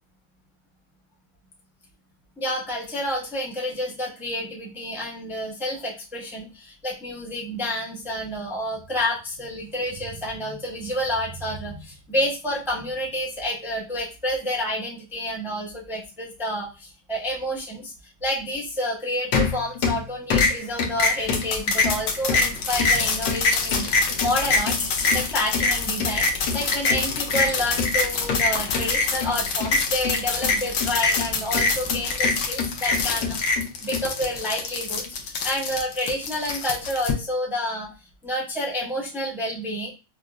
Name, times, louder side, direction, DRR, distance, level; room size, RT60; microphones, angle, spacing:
voice 1, 2.4-17.9 18.2-37.9 38.2-39.9, left 1 dB, 5° right, -3 dB, 0.4 m, -29 dB
sound 1, 19.3-20.0 20.3-37.1, left 4 dB, 80° left, 1.4 m, -24 dB
5.3 x 2.1 x 2.3 m, 0.29 s
omnidirectional pair, 1.9 m